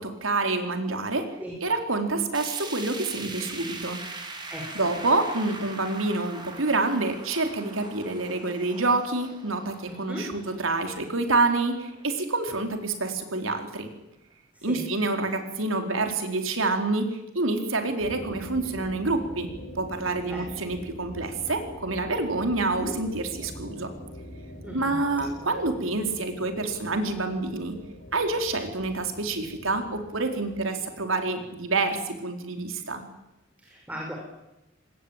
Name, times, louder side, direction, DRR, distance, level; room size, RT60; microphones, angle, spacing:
voice 1, 0.0-1.3 1.6-4.0 4.7-13.9 14.6-23.9 24.7-27.8 28.1-33.0, right 3 dB, 85° right, 5 dB, 4.4 m, -27 dB
sound 1, 2.3-12.5 12.9-13.0 13.4-13.5 14.3-14.4, right 3 dB, 25° right, 4.4 m, -42 dB
voice 2, 4.5-4.9 9.9-10.2 14.5-14.8 20.3-20.4 22.7-22.9 24.6-25.0 33.6-34.1, equal, 10° right, 0 dB, 6.0 m, -37 dB
sound 2, 18.0-30.6, equal, 55° left, 7.9 m, -43 dB
25.5 x 20.5 x 9.1 m, 0.93 s
head